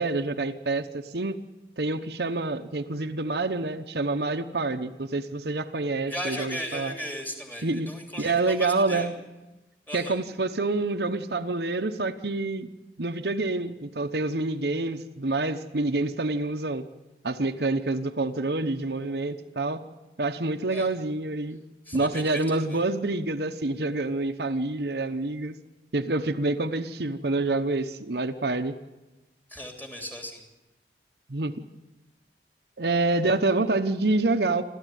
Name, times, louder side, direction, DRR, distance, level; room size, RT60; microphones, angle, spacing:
voice 1, 0.0-1.4 1.8-6.9 7.6-7.9 8.2-9.1 9.9-12.7 13.0-16.8 17.2-19.8 20.2-21.6 21.9-25.6 25.9-28.7 31.3-31.5 32.8-34.6, right 2 dB, 65° right, 6 dB, 1.0 m, -27 dB
voice 2, 6.0-9.1 9.9-10.2 20.7-20.9 21.8-22.8 29.5-30.4, equal, 10° left, 2 dB, 3.2 m, -36 dB
28.0 x 13.0 x 9.3 m, 1.0 s
head